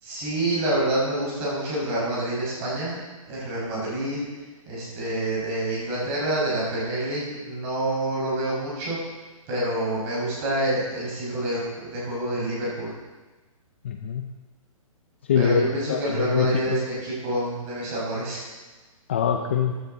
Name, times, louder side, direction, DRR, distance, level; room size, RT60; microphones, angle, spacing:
voice 1, 0.0-3.0 3.3-4.3 4.7-9.0 9.5-12.9 15.3-18.4, right 1 dB, 20° right, -6 dB, 5.3 m, -27 dB
voice 2, 13.8-14.3 15.3-16.8 19.1-19.7, left 8 dB, 20° left, 5 dB, 0.4 m, -24 dB
15.0 x 12.0 x 3.9 m, 1.3 s
hypercardioid pair, 170°, 18 cm